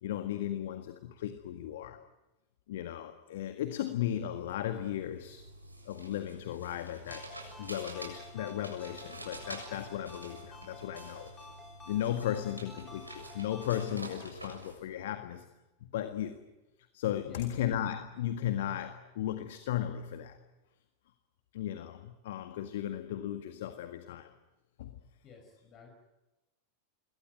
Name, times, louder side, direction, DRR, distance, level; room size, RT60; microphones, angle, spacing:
voice 1, 0.0-2.0 2.7-5.5 5.8-7.3 7.6-11.3 11.9-15.4 15.8-16.4 16.9-20.4 21.5-24.3 24.8-25.0, left 11 dB, 55° left, 9 dB, 1.8 m, -36 dB
sound 1, 4.3-14.8, right 1 dB, 85° right, 7.2 m, -48 dB
Ringtone, 7.1-14.0, left 2 dB, 15° left, 4.6 m, -52 dB
voice 2, 25.2-25.9, left 6 dB, 30° left, 2 dB, 5.6 m, -53 dB
27.0 x 22.5 x 9.3 m, 1.0 s
figure-of-eight pair, 90°, 0 cm